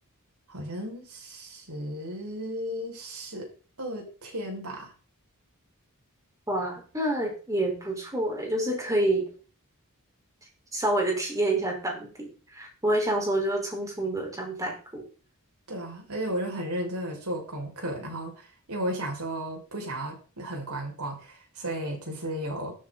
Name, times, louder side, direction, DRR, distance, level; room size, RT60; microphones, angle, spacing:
voice 1, 0.5-3.5 3.8-4.9 15.7-22.7, right 1 dB, 85° right, 1 dB, 6.1 m, -34 dB
voice 2, 6.5-9.3 10.7-15.0, right 1 dB, 15° right, 0 dB, 4.9 m, -28 dB
14.0 x 13.0 x 4.2 m, 0.38 s
head